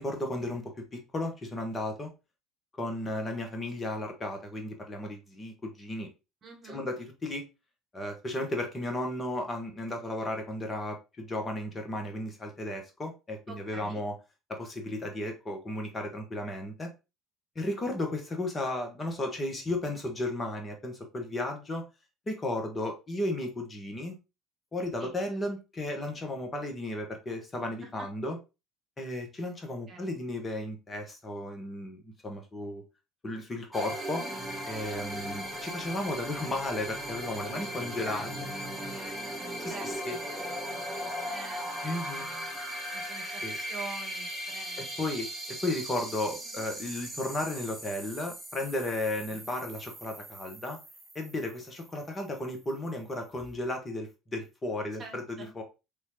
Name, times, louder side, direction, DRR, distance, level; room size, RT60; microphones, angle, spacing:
voice 1, 0.0-2.1 2.8-6.1 6.7-7.4 7.9-14.1 14.5-16.9 17.5-21.8 22.3-24.2 24.7-28.4 29.0-32.8 33.2-34.2 34.7-38.3 39.6-40.2 41.8-42.3 43.4-43.6 45.0-50.8 51.1-55.6, left 1 dB, 30° left, 4 dB, 1.3 m, -34 dB
voice 2, 6.4-6.9 13.5-14.0 25.0-25.3 27.8-28.1 29.9-30.1 37.4-45.1 46.3-46.6 49.3-49.5 55.0-55.5, right 4 dB, 45° right, 4 dB, 1.1 m, -47 dB
Image Rise, 33.7-52.2, equal, 10° right, 1.3 m, -38 dB
3.7 x 3.1 x 2.9 m, 0.27 s
hypercardioid pair, 60°, 0 cm